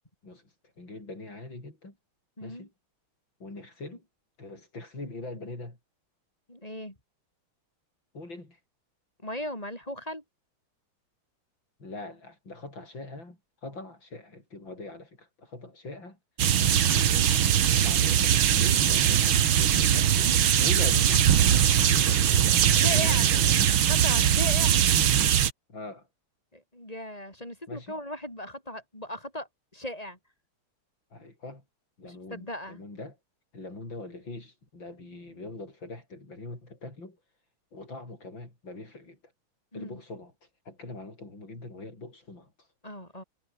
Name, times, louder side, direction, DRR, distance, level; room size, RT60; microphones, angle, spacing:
voice 1, 0.8-2.0 2.4-2.7 3.4-4.1 4.4-5.8 8.1-8.6 11.8-16.2 16.8-17.3 17.7-21.3 21.8-23.7 25.7-26.1 27.7-28.0 31.1-31.6 32.0-33.2 33.5-37.2 37.7-39.2 39.7-40.3 40.6-42.7, left 2 dB, 65° left, 8.3 m, -42 dB
voice 2, 2.4-2.7 6.5-7.0 9.2-10.2 22.7-23.2 23.8-24.8 26.5-29.5 29.7-30.2 32.0-32.8 39.7-40.0 42.8-43.2, left 1 dB, 15° left, 7.2 m, -37 dB
sound 1, 16.4-25.5, right 10 dB, 75° right, 2.1 m, -21 dB
omnidirectional pair, 2.3 m